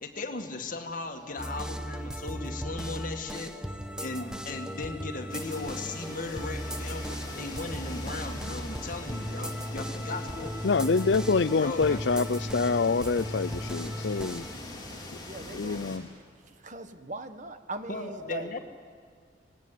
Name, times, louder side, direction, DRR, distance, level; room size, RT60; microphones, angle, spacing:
voice 1, 0.0-10.5 11.6-12.0 17.9-18.6, left 3 dB, 50° left, 2.0 m, -37 dB
sound 1, 1.4-14.5, equal, 5° right, 1.1 m, -37 dB
sound 2, 5.3-16.0, left 2 dB, 25° left, 4.2 m, -42 dB
voice 2, 10.6-14.4 15.5-16.1, left 4 dB, 75° left, 0.6 m, -26 dB
voice 3, 15.3-15.9 16.4-18.6, right 2 dB, 45° right, 1.5 m, -40 dB
24.5 x 19.0 x 9.5 m
head